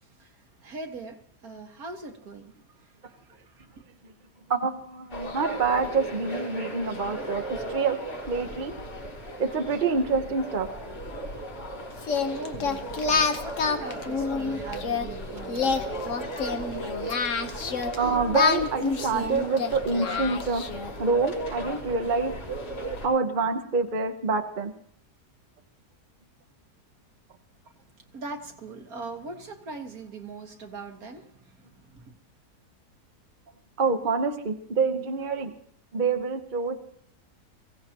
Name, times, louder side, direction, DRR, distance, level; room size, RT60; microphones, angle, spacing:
voice 1, 0.6-2.5 3.1-3.7 12.3-15.9 16.7-16.9 28.1-32.1, right 3 dB, 65° right, 4 dB, 1.9 m, -41 dB
voice 2, 4.5-8.0 8.3-8.7 9.4-10.7 18.0-20.6 21.0-22.3 23.0-24.7 33.8-35.5 35.9-36.8, right 4 dB, 35° right, 6 dB, 1.0 m, -26 dB
sound 1, 5.1-23.1, right 1 dB, 75° left, 4.7 m, -36 dB
Singing, 12.0-15.0 15.5-18.0 18.3-20.9, left 5 dB, 55° left, 1.3 m, -27 dB
22.5 x 16.5 x 2.9 m, 0.67 s
omnidirectional pair, 1.7 m